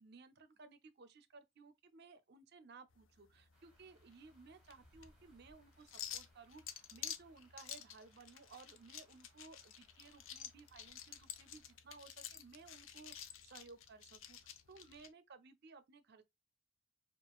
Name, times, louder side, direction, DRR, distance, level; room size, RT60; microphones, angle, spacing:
voice 1, 0.0-16.2, right 4 dB, 50° right, 0.5 m, -59 dB
sound 1, 2.9-15.1, left 10 dB, 65° left, 0.5 m, -51 dB
sound 2, 3.5-11.8, right 1 dB, 5° right, 1.1 m, -72 dB
4.7 x 2.4 x 2.3 m
head